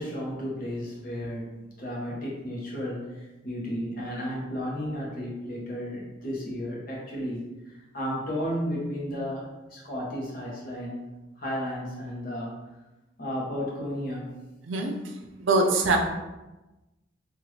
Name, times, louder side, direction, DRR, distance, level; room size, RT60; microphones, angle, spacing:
voice 1, 0.0-7.5 7.9-11.0 11.4-12.6 13.2-14.3, equal, 45° left, -4 dB, 1.0 m, -33 dB
voice 2, 15.4-16.0, right 3 dB, 80° right, 2 dB, 0.6 m, -22 dB
3.6 x 2.5 x 3.1 m, 1.1 s
head